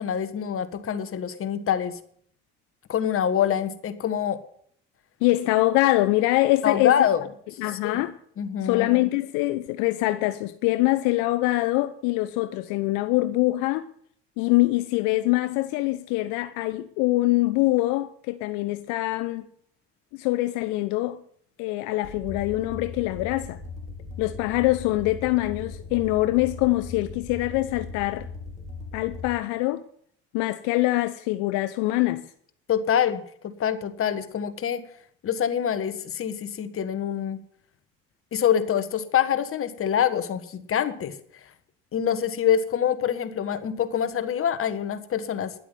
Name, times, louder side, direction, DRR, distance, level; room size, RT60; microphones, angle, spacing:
voice 1, 0.0-2.0 2.9-4.4 6.6-7.2 7.8-8.0 8.4-8.9 32.7-34.8 35.2-37.4 38.3-41.2 41.9-45.5, left 9 dB, 45° left, 1.6 m, -25 dB
voice 2, 5.2-7.1 7.6-8.2 8.6-13.9 14.4-19.5 20.1-21.2 21.6-23.6 24.2-28.3 28.9-29.8 30.3-32.3, left 18 dB, 80° left, 0.7 m, -24 dB
sound 1, 22.0-29.3, left 3 dB, 25° left, 3.0 m, -39 dB
11.0 x 8.0 x 9.1 m
supercardioid pair, 75°, 30 cm